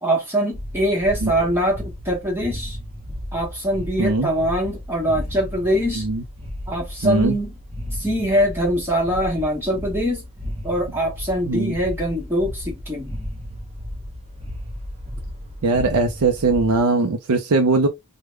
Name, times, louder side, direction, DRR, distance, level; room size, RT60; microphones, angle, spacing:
voice 1, 0.0-2.8 3.3-6.1 6.7-7.6 7.9-10.2 10.6-13.2, equal, 10° right, 1.1 m, -23 dB
sound 1, 0.5-16.8, equal, 25° right, 0.7 m, -34 dB
voice 2, 7.0-7.3 11.5-11.8 15.6-17.9, right 3 dB, 85° right, 0.5 m, -20 dB
3.4 x 2.1 x 3.1 m
head